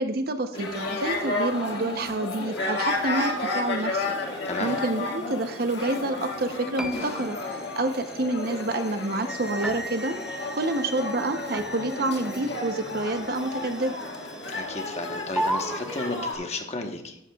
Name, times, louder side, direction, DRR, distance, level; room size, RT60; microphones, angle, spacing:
voice 1, 0.0-4.1 4.6-7.4 7.8-10.2 10.5-13.9, right 2 dB, 50° right, 7 dB, 0.7 m, -28 dB
sound 1, 0.5-16.3, left 2 dB, 60° left, 1.9 m, -32 dB
sound 2, 0.6-16.5, right 1 dB, 5° right, 0.5 m, -39 dB
voice 2, 14.5-17.2, left 2 dB, 35° left, 4 dB, 1.1 m, -33 dB
12.5 x 12.5 x 2.3 m, 0.84 s
head